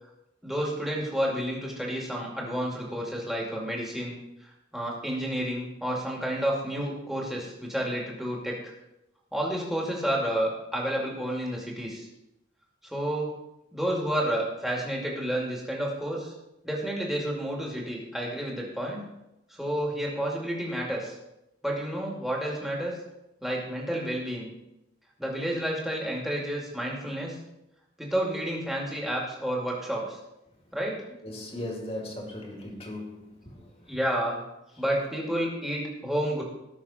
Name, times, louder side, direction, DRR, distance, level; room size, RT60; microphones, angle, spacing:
voice 1, 0.4-8.6 9.3-12.1 12.8-13.3 13.7-16.3 16.6-19.0 19.5-21.2 21.6-23.0 23.4-24.5 25.2-27.4 28.0-30.2 30.7-31.0 33.8-34.4 34.8-36.4, right 1 dB, ahead, 2.5 m, -30 dB
voice 2, 31.2-34.0, left 1 dB, 30° left, 2.2 m, -38 dB
18.5 x 6.6 x 4.3 m
head